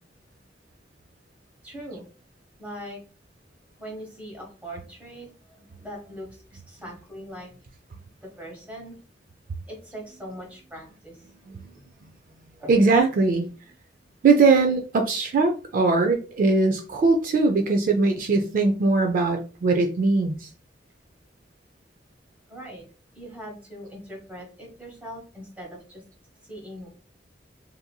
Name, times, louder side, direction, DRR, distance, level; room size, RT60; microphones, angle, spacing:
voice 1, 1.6-2.0 2.6-3.0 3.8-7.5 8.4-9.0 9.7-11.2 11.7-11.8 12.6-12.7 22.5-22.8 23.1-26.0 26.4-26.9, equal, 10° right, -2 dB, 1.1 m, -41 dB
voice 2, 12.7-13.5 14.2-20.5, right 3 dB, 50° right, 4 dB, 0.3 m, -21 dB
2.8 x 2.6 x 2.2 m, 0.36 s
head